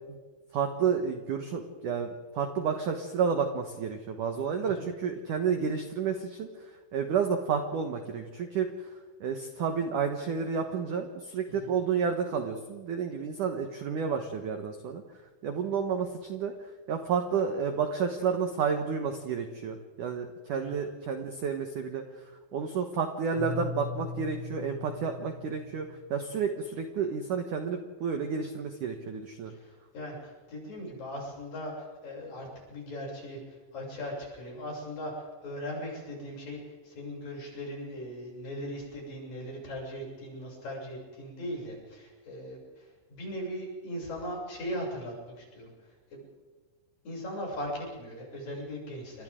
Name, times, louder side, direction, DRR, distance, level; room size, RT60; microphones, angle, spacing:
voice 1, 0.5-8.7 9.2-15.0 15.4-16.5 16.9-22.0 22.5-29.5, right 6 dB, 80° right, 5 dB, 1.8 m, -31 dB
Keyboard (musical), 23.3-26.3, left 3 dB, 40° right, 8.1 m, -40 dB
voice 2, 29.5-45.7 46.1-46.2 47.1-49.2, equal, 45° left, -2 dB, 8.7 m, -39 dB
29.5 x 25.0 x 3.8 m, 1.4 s
omnidirectional pair, 5.7 m